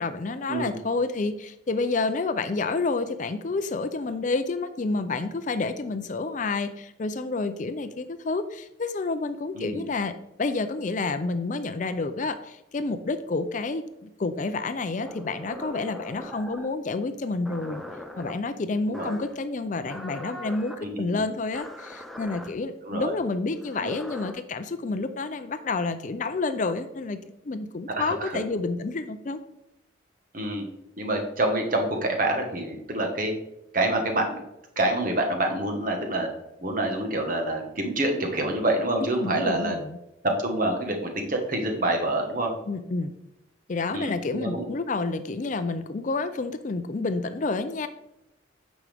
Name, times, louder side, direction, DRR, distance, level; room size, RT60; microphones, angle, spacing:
voice 1, 0.0-17.8 18.2-27.2 27.4-29.4 39.2-40.0 42.7-43.1 43.7-47.9, left 3 dB, 40° left, 10 dB, 0.4 m, -29 dB
voice 2, 9.5-9.9 18.9-19.2 20.8-21.2 22.8-23.1 23.8-23.9 27.9-28.4 30.3-30.7 31.0-33.3 33.7-34.4 34.7-36.3 36.6-39.8 40.2-42.5 43.9-44.7, right 1 dB, 45° right, 2 dB, 1.4 m, -27 dB
sound 1, 15.0-16.7 17.4-18.3 18.9-19.4 19.8-20.8 21.5-22.5 23.6-24.3, left 1 dB, ahead, 0.7 m, -40 dB
9.4 x 6.1 x 3.5 m, 0.86 s
head